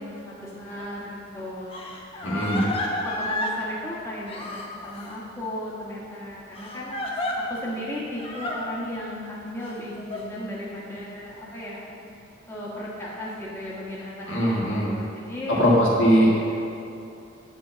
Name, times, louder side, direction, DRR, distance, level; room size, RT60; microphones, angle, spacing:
voice 1, 0.0-1.7 2.2-6.9 7.5-11.8 12.5-15.7, left 1 dB, 15° left, -6 dB, 1.4 m, -35 dB
Crying sobbing, 0.8-0.9 1.7-3.6 4.3-5.1 6.6-7.4 8.2-8.6 9.6-10.2, left 1 dB, 30° left, 1.0 m, -31 dB
voice 2, 2.2-2.6 14.3-14.9 15.6-16.3, equal, 70° left, -5 dB, 2.0 m, -20 dB
10.0 x 4.6 x 6.7 m, 2.7 s
head